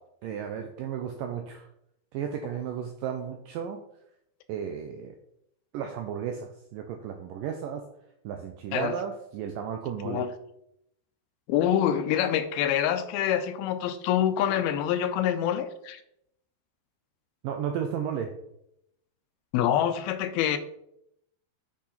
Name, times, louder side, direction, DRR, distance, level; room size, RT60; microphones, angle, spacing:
voice 1, 0.2-1.7 2.1-3.8 4.5-5.2 5.7-7.9 8.2-10.3 17.4-18.3, right 8 dB, 85° right, 1.9 m, -34 dB
voice 2, 11.5-16.0 19.5-20.6, left 10 dB, 80° left, 2.3 m, -26 dB
8.5 x 6.3 x 4.2 m
omnidirectional pair, 4.6 m